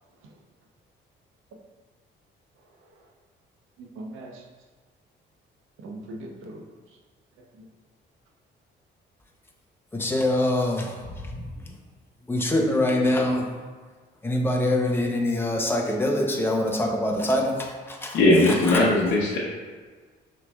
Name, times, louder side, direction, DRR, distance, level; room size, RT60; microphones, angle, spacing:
voice 1, 2.5-3.1 3.8-4.5 5.8-7.0 7.5-7.7 10.1-10.3, right 1 dB, 90° right, 0 dB, 0.7 m, -42 dB
voice 2, 9.9-11.7 12.2-13.5 14.2-18.2 18.5-18.8, left 1 dB, 10° left, 0 dB, 0.7 m, -25 dB
voice 3, 18.1-19.4, left 2 dB, 65° left, -5 dB, 0.8 m, -19 dB
5.7 x 3.2 x 2.3 m, 1.4 s
cardioid pair, 90°, 20 cm